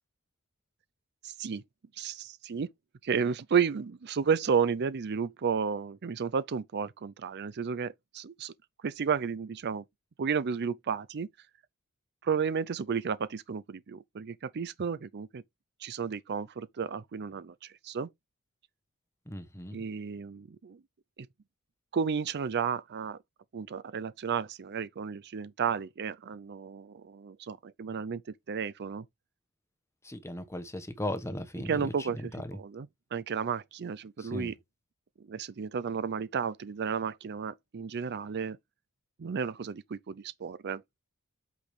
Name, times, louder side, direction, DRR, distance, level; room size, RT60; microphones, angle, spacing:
voice 1, 1.2-1.6 2.0-2.7 3.0-8.5 8.8-9.8 10.2-11.3 12.2-15.4 15.8-18.1 19.7-20.8 21.9-23.2 23.5-28.2 28.5-29.0 31.6-34.5 35.3-38.6 39.2-40.8, right 6 dB, 50° right, 0.5 m, -32 dB
voice 2, 19.3-19.9 30.0-32.6 34.2-34.5, left 1 dB, 10° left, 1.2 m, -37 dB
8.4 x 5.9 x 3.3 m
head